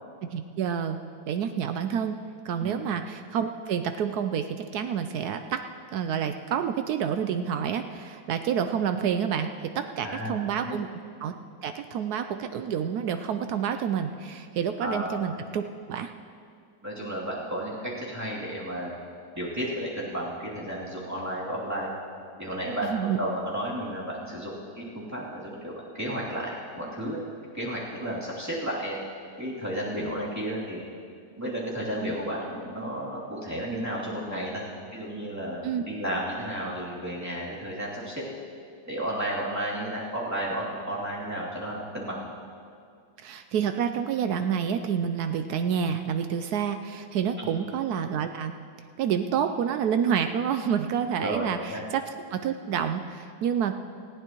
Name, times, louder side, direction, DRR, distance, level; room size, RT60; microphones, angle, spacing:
voice 1, 0.3-1.0 1.3-2.2 2.4-5.6 5.9-10.9 11.2-11.3 11.6-15.6 15.9-16.1 22.9-23.2 35.6-35.8 43.2-48.5 49.0-52.0 52.3-53.7, right 8 dB, 80° right, 8 dB, 0.8 m, -28 dB
voice 2, 10.0-10.8 14.8-15.1 16.8-18.9 19.3-21.9 22.4-22.9 23.2-26.5 26.8-27.2 27.5-29.0 29.4-30.8 31.4-34.6 34.9-38.2 38.9-42.2 47.4-47.5 51.2-51.8, right 1 dB, 10° right, -7 dB, 2.8 m, -32 dB
19.5 x 15.5 x 3.0 m, 2.3 s
omnidirectional pair, 2.2 m